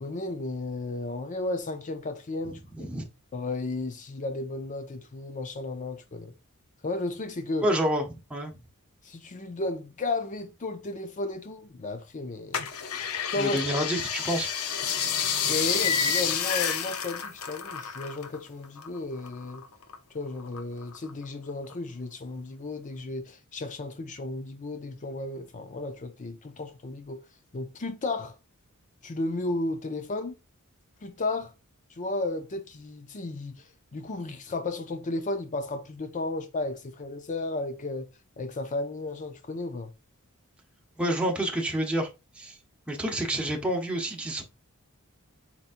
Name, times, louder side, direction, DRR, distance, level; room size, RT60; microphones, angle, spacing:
voice 1, 0.0-2.9 3.3-6.3 6.8-7.7 9.0-12.7 13.3-13.6 15.5-19.6 20.1-27.2 27.5-28.3 29.0-30.4 31.0-31.5 32.0-33.5 33.9-38.1 38.4-39.9, left 2 dB, 35° left, 0.5 m, -33 dB
voice 2, 7.6-8.5 13.4-14.5 15.1-15.3 41.0-42.1 42.4-42.6 42.9-44.4, right 1 dB, 5° right, 0.9 m, -28 dB
sound 1, 12.5-18.4 18.6-19.9 20.4-21.2 21.7-21.8, left 7 dB, 75° left, 0.8 m, -29 dB
4.4 x 4.1 x 2.5 m
head